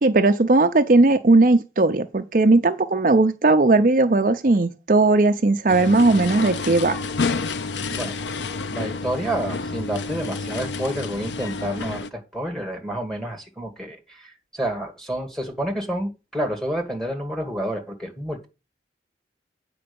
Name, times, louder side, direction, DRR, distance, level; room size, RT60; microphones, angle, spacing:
voice 1, 0.0-7.0, right 2 dB, 50° right, 0.6 m, -17 dB
sound 1, 5.7-12.1, left 4 dB, 90° left, 0.6 m, -29 dB
voice 2, 7.9-8.3 8.7-18.5, right 1 dB, ahead, 1.8 m, -29 dB
8.7 x 4.6 x 6.9 m
head